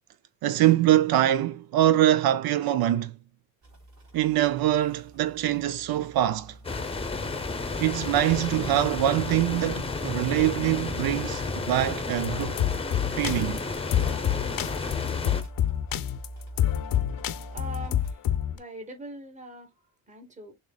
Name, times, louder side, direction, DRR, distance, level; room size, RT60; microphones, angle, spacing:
voice 1, 0.4-3.1 4.1-6.6 7.8-12.6 13.2-13.6, right 13 dB, 85° right, 0.5 m, -24 dB
sound 1, 3.6-18.2, right 1 dB, 50° right, 3.3 m, -47 dB
sound 2, 6.6-15.4, left 3 dB, 15° left, 0.7 m, -32 dB
sound 3, 12.2-18.6, left 11 dB, 70° left, 0.6 m, -27 dB
voice 2, 17.5-18.2 18.5-19.7 20.1-20.5, right 1 dB, 20° right, 1.2 m, -41 dB
6.6 x 3.1 x 2.2 m
cardioid pair, 150°, 36 cm